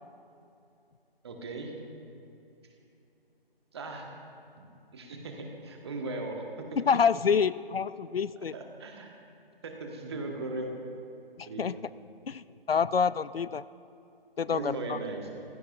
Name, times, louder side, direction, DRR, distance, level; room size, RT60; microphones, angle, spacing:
voice 1, 1.2-1.7 3.7-4.1 4.6-4.7 4.9-6.4 6.7-6.8 8.3-9.1 9.6-10.7 11.4-11.8 14.5-15.3, right 2 dB, 25° right, 2 dB, 1.4 m, -38 dB
voice 2, 6.8-8.5 11.4-11.8 12.3-13.6 14.4-15.0, left 6 dB, 75° left, 17 dB, 0.5 m, -27 dB
23.5 x 16.0 x 2.5 m, 2.7 s
figure-of-eight pair, 150°, 30 cm